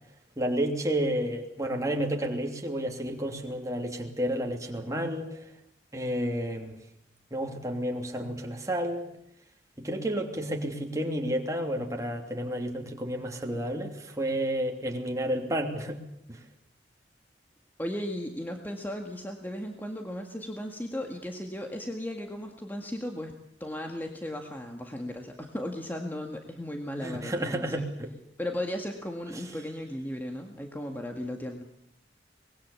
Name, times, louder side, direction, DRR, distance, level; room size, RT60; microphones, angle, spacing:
voice 1, 0.4-5.5 5.9-6.8 7.3-9.1 9.8-16.0 16.3-16.4 27.0-28.1, right 1 dB, 20° right, 1 dB, 3.0 m, -31 dB
voice 2, 17.8-23.3 23.6-27.9 28.4-31.6, left 1 dB, 10° left, 3 dB, 1.9 m, -36 dB
24.5 x 21.0 x 7.3 m, 0.75 s
head